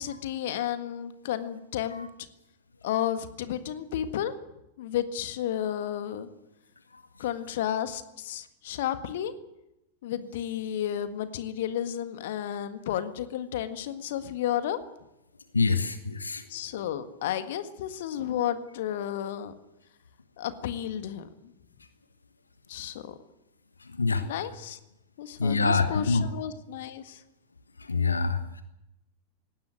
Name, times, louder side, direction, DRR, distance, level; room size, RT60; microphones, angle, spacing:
voice 1, 0.0-2.1 2.8-4.3 4.8-6.3 7.2-9.3 10.0-14.8 16.5-19.5 20.4-21.5 22.7-23.1 24.2-24.8 25.2-27.2, left 10 dB, 55° left, 10 dB, 1.6 m, -32 dB
voice 2, 15.5-16.4 24.0-24.2 25.4-26.2 27.9-28.6, left 4 dB, 80° left, 9 dB, 1.3 m, -25 dB
18.5 x 17.0 x 9.3 m, 0.90 s
figure-of-eight pair, 90°, 0 cm